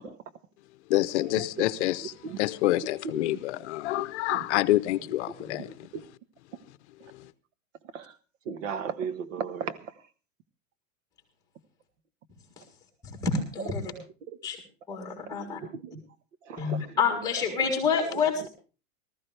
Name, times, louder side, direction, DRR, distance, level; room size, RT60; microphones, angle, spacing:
voice 1, 0.9-5.7, left 16 dB, 55° left, 0.8 m, -27 dB
voice 2, 8.5-9.8 15.3-15.9 16.5-16.8, right 7 dB, 65° right, 1.5 m, -35 dB
voice 3, 13.5-13.9 14.4-14.6 14.9-15.6 16.6-18.5, left 6 dB, 10° left, 3.6 m, -28 dB
19.0 x 14.0 x 3.4 m
supercardioid pair, 170°, 41 cm